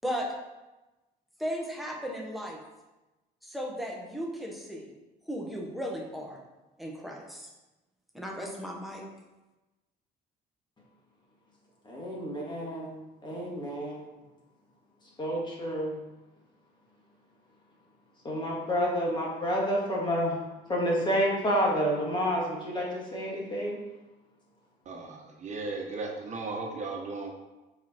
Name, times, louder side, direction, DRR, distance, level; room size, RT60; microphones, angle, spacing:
voice 1, 1.4-2.6 3.4-4.9 5.3-6.4 6.8-7.5 8.1-9.0, equal, ahead, -1 dB, 1.5 m, -35 dB
voice 2, 11.9-14.1 15.2-16.0 18.2-20.4 20.7-23.8, equal, 25° left, -3 dB, 2.2 m, -29 dB
voice 3, 24.8-27.3, right 3 dB, 45° right, 0 dB, 1.4 m, -36 dB
7.0 x 4.9 x 4.5 m, 1.1 s
cardioid pair, 110°, 17 cm